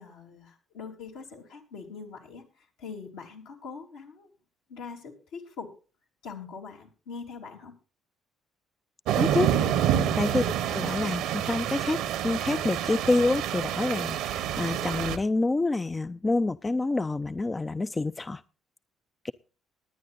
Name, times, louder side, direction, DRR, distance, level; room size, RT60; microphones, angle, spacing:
voice 1, 0.0-2.4 2.8-4.3 4.7-5.7 6.2-7.7 9.9-10.2, left 5 dB, 75° left, -1 dB, 3.0 m, -42 dB
sound 1, 9.1-15.2, right 10 dB, 70° right, 1.0 m, -28 dB
voice 2, 9.2-9.5 10.2-18.4 19.2-19.3, left 2 dB, 25° left, 14 dB, 0.5 m, -27 dB
19.5 x 9.9 x 2.5 m, 0.34 s
hypercardioid pair, 50°, 0 cm